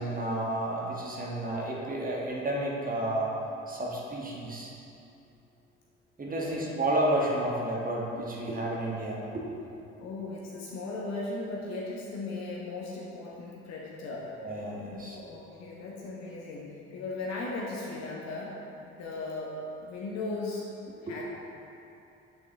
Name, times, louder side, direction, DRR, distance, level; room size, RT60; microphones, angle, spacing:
voice 1, 0.0-3.3 3.7-4.7 6.2-9.5 14.4-15.2 21.1-21.2, right 1 dB, 25° right, -3 dB, 1.5 m, -31 dB
voice 2, 6.2-6.7 10.0-14.3 14.8-18.5 18.9-19.5 19.8-20.7 21.0-21.2, left 3 dB, 50° left, -4 dB, 1.2 m, -37 dB
8.7 x 6.2 x 3.5 m, 2.8 s
figure-of-eight pair, 50°, 34 cm